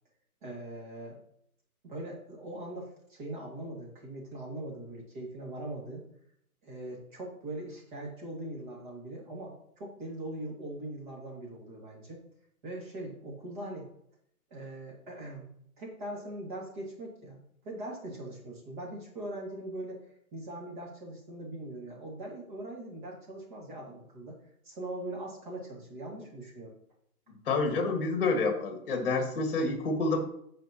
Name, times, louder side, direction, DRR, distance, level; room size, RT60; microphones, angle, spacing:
voice 1, 0.4-1.2 1.8-6.1 6.6-12.2 12.6-13.9 14.5-15.5 15.8-17.4 17.6-20.0 20.3-24.4 24.6-26.7, right 1 dB, 35° right, -2 dB, 2.4 m, -41 dB
voice 2, 27.5-30.2, left 3 dB, 40° left, 3 dB, 1.9 m, -28 dB
15.0 x 5.1 x 3.0 m, 0.70 s
hypercardioid pair, 175°, 44 cm